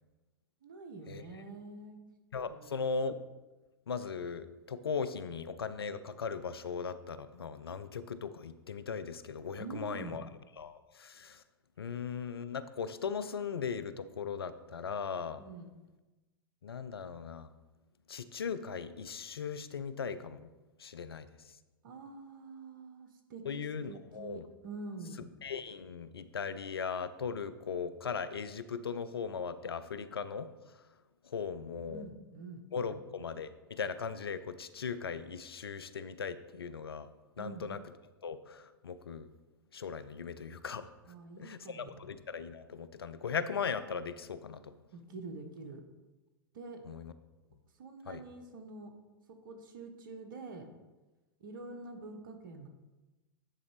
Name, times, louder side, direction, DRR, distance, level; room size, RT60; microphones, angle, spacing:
voice 1, 0.6-2.0 2.5-2.9 9.5-10.2 15.3-15.7 21.8-25.3 31.8-33.0 37.4-37.7 41.1-42.1 44.9-45.8 46.5-46.8 47.8-48.9 49.3-50.7 51.4-52.7, right 3 dB, 60° right, 6 dB, 1.3 m, -46 dB
voice 2, 2.3-3.2 3.9-10.2 10.6-11.4 11.8-15.4 16.6-17.5 18.1-20.5 20.8-21.3 23.4-24.5 25.4-30.5 31.2-32.1 32.7-37.1 37.4-37.8 38.2-39.3 39.7-40.9 41.4-44.7 46.9-47.1 48.1-48.2, left 6 dB, 80° left, 12 dB, 0.5 m, -38 dB
10.0 x 4.0 x 5.0 m, 1.1 s
figure-of-eight pair, 100°, 12 cm